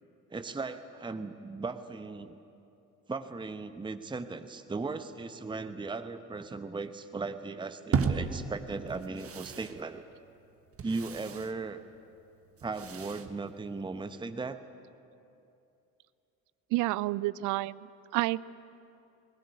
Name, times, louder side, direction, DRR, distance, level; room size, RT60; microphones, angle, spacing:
voice 1, 0.3-2.4 3.1-10.0 10.8-11.8 12.6-14.6, right 3 dB, 10° right, 10 dB, 1.0 m, -37 dB
sound 1, 7.9-14.1, right 5 dB, 35° right, 1.4 m, -36 dB
voice 2, 16.7-18.4, right 18 dB, 50° right, 20 dB, 0.5 m, -30 dB
20.0 x 20.0 x 9.5 m, 2.7 s
figure-of-eight pair, 50°, 41 cm